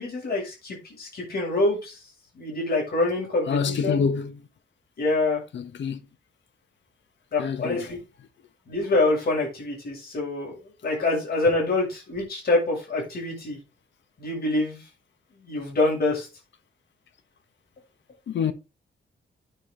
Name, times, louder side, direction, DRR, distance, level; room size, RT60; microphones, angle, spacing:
voice 1, 0.0-2.0 2.4-4.1 5.0-5.4 7.3-8.0 8.7-10.5 10.8-13.6 14.2-14.8 15.4-16.3, left 2 dB, 55° left, 7.2 m, -25 dB
voice 2, 3.5-4.4 5.5-6.0 7.4-7.9 18.3-18.5, left 6 dB, 70° left, 1.5 m, -26 dB
9.7 x 7.1 x 4.0 m
wide cardioid pair, 175°, 20 cm